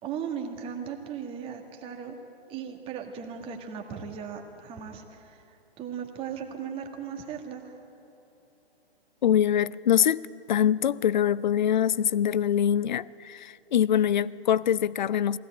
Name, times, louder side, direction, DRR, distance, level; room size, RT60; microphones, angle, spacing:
voice 1, 0.0-2.2 2.5-5.4 5.8-7.8, right 7 dB, 15° right, 2.0 m, -37 dB
voice 2, 9.2-15.4, left 9 dB, 45° left, 0.5 m, -24 dB
23.0 x 17.0 x 9.0 m
figure-of-eight pair, 130°, 31 cm